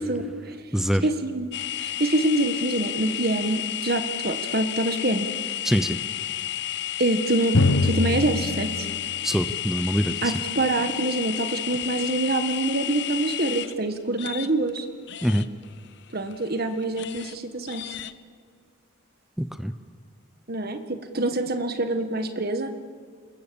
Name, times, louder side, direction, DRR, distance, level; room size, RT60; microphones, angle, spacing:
voice 1, 0.0-0.5 1.0-1.5 1.8-5.3 7.0-8.9 10.2-14.8 16.1-17.9 20.5-22.7, right 2 dB, 45° right, 8 dB, 1.6 m, -26 dB
voice 2, 0.7-1.1 5.6-6.0 9.2-10.1 15.2-15.4 19.4-19.7, equal, ahead, 10 dB, 0.7 m, -24 dB
sound 1, 1.5-14.8 15.1-17.4 17.7-18.1, left 13 dB, 55° left, 0.8 m, -32 dB
Drum, 7.5-11.1, left 2 dB, 85° left, 1.3 m, -26 dB
27.5 x 22.0 x 7.1 m, 2.1 s
head